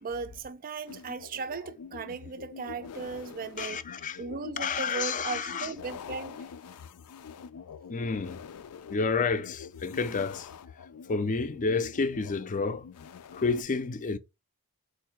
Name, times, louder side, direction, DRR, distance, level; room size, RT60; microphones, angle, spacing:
voice 1, 0.0-3.8 4.2-6.4, right 5 dB, 40° right, 0.4 m, -37 dB
sound 1, 0.9-13.6, left 6 dB, 90° left, 0.4 m, -46 dB
voice 2, 3.6-4.2 4.6-5.7 7.9-8.4 8.9-10.5 11.1-12.9 13.3-14.2, left 4 dB, 35° left, 0.5 m, -30 dB
4.6 x 2.6 x 4.3 m
head